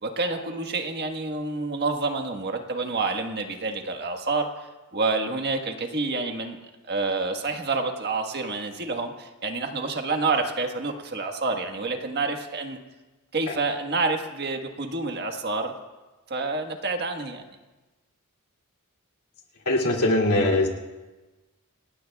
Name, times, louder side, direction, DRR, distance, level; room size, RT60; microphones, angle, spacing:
voice 1, 0.0-6.6 6.8-12.8 13.3-15.7 16.3-17.4, right 3 dB, 50° right, 5 dB, 1.4 m, -28 dB
voice 2, 19.7-20.7, left 1 dB, 85° left, 0 dB, 2.5 m, -21 dB
27.0 x 20.0 x 2.3 m, 1.2 s
head